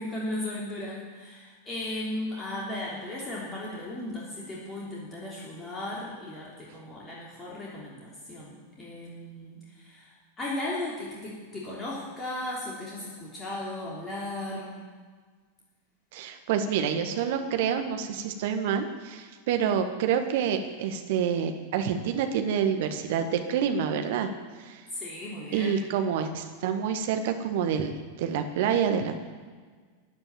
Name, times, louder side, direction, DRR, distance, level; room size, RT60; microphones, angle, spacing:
voice 1, 0.0-14.8 24.9-25.8, left 1 dB, 20° left, -5 dB, 3.3 m, -36 dB
voice 2, 16.1-24.3 24.6-24.8 25.5-27.9 28.2-29.2, right 8 dB, 50° right, 6 dB, 1.6 m, -27 dB
14.0 x 8.8 x 8.7 m, 1.5 s
figure-of-eight pair, 90°, 0 cm